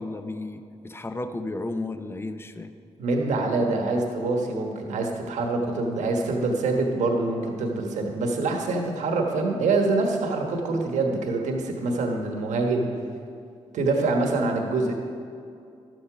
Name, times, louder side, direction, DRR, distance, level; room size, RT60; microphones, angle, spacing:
voice 1, 0.0-2.7, left 2 dB, 20° left, 9 dB, 0.7 m, -33 dB
voice 2, 3.0-12.9 13.7-14.9, right 3 dB, 75° right, 2 dB, 1.3 m, -25 dB
11.5 x 7.9 x 5.0 m, 2.4 s
supercardioid pair, 55°, 12 cm